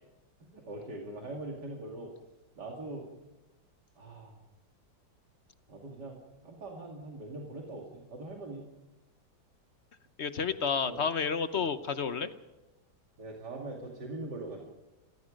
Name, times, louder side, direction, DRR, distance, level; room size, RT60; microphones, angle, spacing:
voice 1, 0.5-2.1 2.5-3.1 4.0-4.4 5.7-8.6 10.8-11.0 11.5-11.6 13.2-14.6, right 2 dB, 65° right, 0 dB, 3.1 m, -42 dB
voice 2, 10.2-12.3, left 6 dB, 45° left, 11 dB, 0.9 m, -30 dB
28.0 x 19.0 x 5.2 m, 1.0 s
omnidirectional pair, 2.0 m